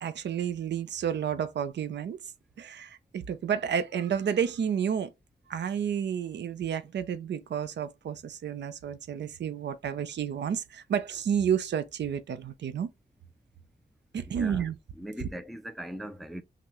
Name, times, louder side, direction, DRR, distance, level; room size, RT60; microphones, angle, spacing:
voice 1, 0.0-2.2 2.6-5.1 5.5-12.9 14.1-14.8, right 8 dB, 80° right, 0.5 m, -31 dB
voice 2, 14.4-14.7 15.0-16.4, equal, ahead, 0.3 m, -39 dB
5.8 x 2.1 x 3.0 m
wide cardioid pair, 160°, 18 cm